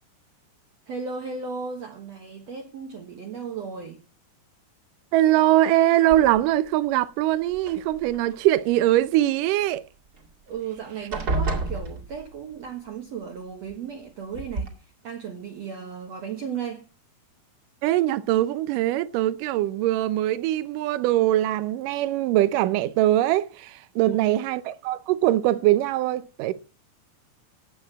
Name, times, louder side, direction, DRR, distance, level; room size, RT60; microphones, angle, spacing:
voice 1, 0.9-4.0 10.5-14.8 15.0-16.9 24.0-24.4, right 6 dB, 55° right, 2.1 m, -35 dB
voice 2, 5.1-9.8 17.8-26.5, right 14 dB, 75° right, 2.0 m, -22 dB
sound 1, 6.1-6.7 7.5-8.4 10.2-10.3 10.6-10.8 11.1-12.5 13.7-13.8 14.3-14.7, right 3 dB, 30° right, 2.2 m, -30 dB
13.5 x 8.7 x 7.3 m
omnidirectional pair, 4.5 m